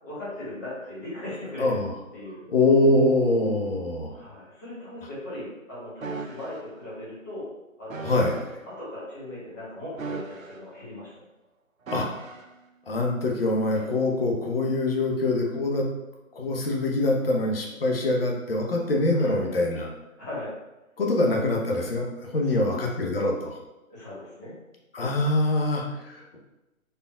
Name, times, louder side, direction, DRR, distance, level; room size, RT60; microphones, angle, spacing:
voice 1, 0.0-1.8 2.1-2.4 4.1-7.5 7.8-8.1 8.6-11.2 19.1-19.5 20.2-20.5 22.3-23.2 23.9-24.5, left 1 dB, 15° left, -9 dB, 1.0 m, -38 dB
voice 2, 1.6-1.9 2.5-4.1 8.0-8.4 11.9-12.1 12.9-15.9 16.3-19.9 21.0-23.5 24.9-26.4, left 2 dB, 45° left, 0 dB, 1.0 m, -24 dB
sound 1, 6.0-6.6 7.9-8.6 9.9-10.8 11.9-12.6 13.7-14.0, right 4 dB, 75° right, 0.8 m, -38 dB
5.0 x 4.5 x 2.4 m, 1.0 s
figure-of-eight pair, 160°, 41 cm